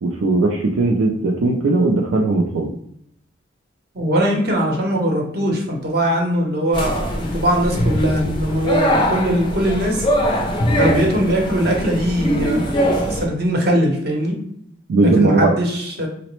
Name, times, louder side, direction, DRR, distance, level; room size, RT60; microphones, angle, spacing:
voice 1, 0.0-2.7 14.9-15.5, right 2 dB, 75° right, 1 dB, 0.4 m, -18 dB
voice 2, 3.9-10.1 10.7-14.4 15.2-16.1, equal, 50° right, 0 dB, 0.8 m, -20 dB
sound 1, 6.7-13.3, equal, 25° left, 0.4 m, -21 dB
3.9 x 2.0 x 3.0 m, 0.72 s
head